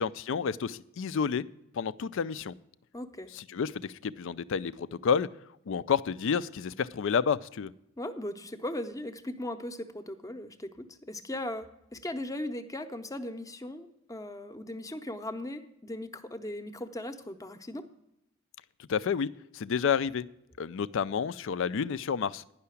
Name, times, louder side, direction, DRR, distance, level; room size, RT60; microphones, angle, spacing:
voice 1, 0.0-1.4 1.7-2.5 3.3-5.3 5.7-7.7 18.9-20.2 20.6-22.4, left 6 dB, 65° left, 17 dB, 0.4 m, -30 dB
voice 2, 2.9-3.3 8.0-10.8 11.1-11.7 11.9-17.8, left 1 dB, 15° left, 9 dB, 0.7 m, -38 dB
10.5 x 5.7 x 8.3 m, 0.83 s
head